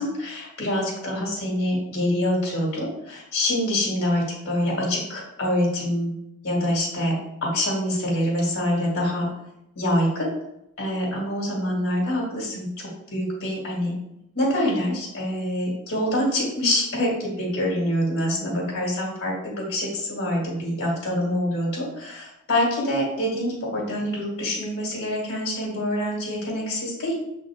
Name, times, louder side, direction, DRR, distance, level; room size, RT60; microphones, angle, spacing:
voice 1, 0.0-6.1 6.4-7.1 7.4-9.3 9.8-10.3 10.8-12.7 13.1-13.9 14.4-27.1, left 1 dB, 65° left, -4 dB, 2.0 m, -25 dB
7.2 x 4.1 x 3.5 m, 0.83 s
head